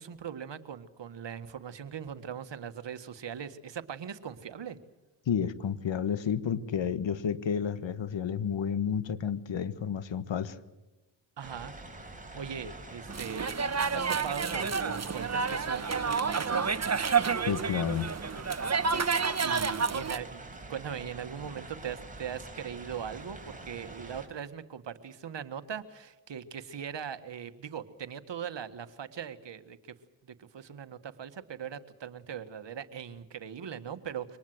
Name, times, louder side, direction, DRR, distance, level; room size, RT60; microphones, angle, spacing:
voice 1, 0.0-4.8 11.4-11.7 12.3-16.8 19.4-29.8 30.2-34.4, right 8 dB, 60° right, 10 dB, 1.7 m, -40 dB
voice 2, 5.3-10.6 17.5-18.1, left 7 dB, 65° left, 14 dB, 1.6 m, -31 dB
sound 1, 11.4-24.3, right 2 dB, 15° right, 5.1 m, -46 dB
sound 2, 13.1-20.2, right 5 dB, 35° right, 1.4 m, -29 dB
24.5 x 19.5 x 7.9 m, 1.1 s
supercardioid pair, 45°, 48 cm